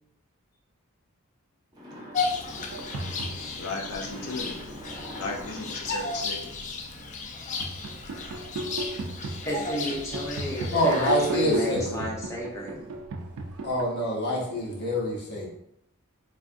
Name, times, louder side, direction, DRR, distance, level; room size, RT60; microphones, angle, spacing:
sound 1, 1.7-7.1, equal, 20° right, 0.6 m, -45 dB
Bird vocalization bird call bird song, 2.1-11.8, left 4 dB, 35° left, 0.3 m, -35 dB
sound 2, 2.6-3.8 4.7-5.9 6.4-13.8, right 2 dB, 70° right, 0.4 m, -36 dB
voice 1, 3.6-4.6 5.2-6.5, left 3 dB, 80° left, 2 dB, 0.6 m, -35 dB
voice 2, 9.4-12.7, equal, 15° left, -4 dB, 0.7 m, -32 dB
voice 3, 10.7-12.1 13.6-15.5, equal, 50° left, -3 dB, 0.8 m, -26 dB
3.3 x 2.5 x 2.5 m, 0.75 s
head